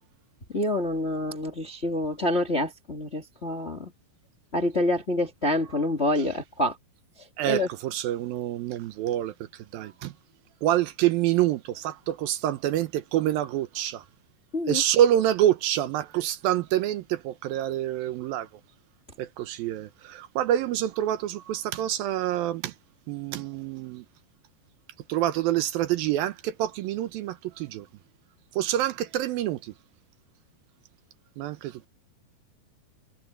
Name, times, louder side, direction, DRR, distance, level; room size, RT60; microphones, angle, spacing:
voice 1, 0.5-3.9 4.5-6.7 7.5-7.7 14.5-14.8, left 1 dB, 25° left, 1.5 m, -27 dB
voice 2, 7.4-10.1 10.6-14.1 14.7-18.5 19.2-22.7 23.1-24.1 25.1-27.9 28.5-29.7 31.4-31.9, right 12 dB, 75° right, 2.5 m, -27 dB
omnidirectional pair, 4.5 m